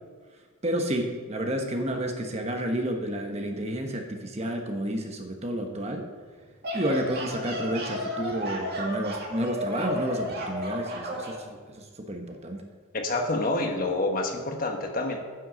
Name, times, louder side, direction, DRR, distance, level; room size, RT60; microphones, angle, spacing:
voice 1, 0.6-6.0 6.7-12.7, right 1 dB, 30° right, 3 dB, 1.1 m, -30 dB
sound 1, 6.4-11.4, equal, 45° right, 2.1 m, -33 dB
voice 2, 12.9-15.2, left 2 dB, 40° left, 3 dB, 1.3 m, -27 dB
9.8 x 7.8 x 6.2 m, 1.5 s
head